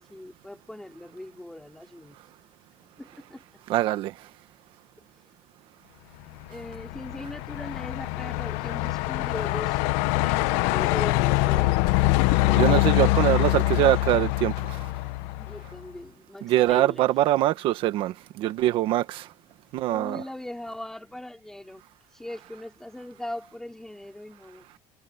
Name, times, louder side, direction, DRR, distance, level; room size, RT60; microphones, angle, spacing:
voice 1, 0.0-2.2 3.0-3.6 6.5-9.8 10.1-12.9 15.3-17.2 19.9-21.8 22.1-24.6, left 1 dB, 5° left, 4.5 m, -40 dB
voice 2, 3.7-4.1 12.3-14.8 16.4-19.3 19.7-20.2, right 14 dB, 50° right, 1.3 m, -23 dB
Truck, 6.4-15.8, left 20 dB, 80° left, 1.0 m, -24 dB
cardioid pair, 165°, 11 cm